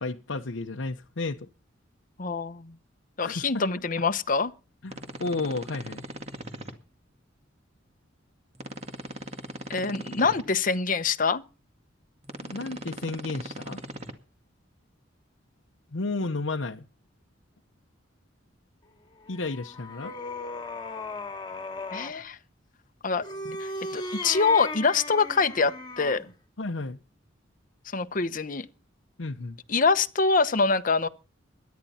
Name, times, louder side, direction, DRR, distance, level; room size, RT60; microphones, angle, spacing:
voice 1, 0.0-1.5 3.2-3.6 4.8-6.0 12.4-13.8 15.9-16.9 19.3-20.1 23.4-23.6 23.9-24.0 26.6-27.0 29.2-29.6, left 3 dB, 90° left, 0.9 m, -32 dB
voice 2, 2.2-2.7 3.2-4.5 9.7-11.4 21.9-22.4 23.0-23.2 23.6-26.3 27.9-28.7 29.7-31.1, left 4 dB, 45° left, 0.9 m, -25 dB
sound 1, 4.9-6.7 8.5-10.4 12.2-14.1, right 1 dB, 35° right, 2.1 m, -40 dB
sound 2, 19.2-22.2 23.1-26.3, left 2 dB, 25° left, 2.1 m, -37 dB
22.5 x 10.5 x 4.3 m
head